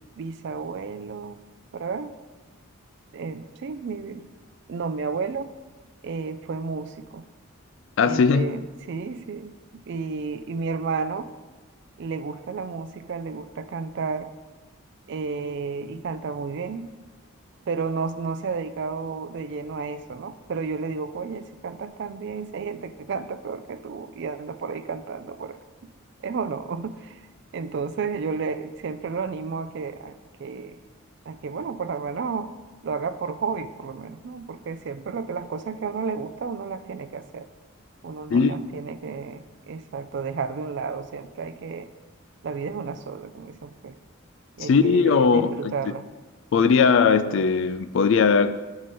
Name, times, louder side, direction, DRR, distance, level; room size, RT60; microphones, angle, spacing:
voice 1, 0.2-1.4 1.7-2.1 3.1-4.2 4.7-5.5 6.0-7.2 8.0-11.3 12.0-14.3 15.1-16.9 17.7-25.6 26.2-27.2 27.5-30.8 31.3-32.5 32.8-37.5 38.0-41.9 42.4-44.0 44.6-46.1, right 5 dB, 55° right, 0.3 m, -32 dB
voice 2, 8.0-8.5 38.3-38.6 44.6-45.7 46.5-48.7, left 5 dB, 60° left, 0.3 m, -19 dB
8.9 x 4.8 x 4.3 m
head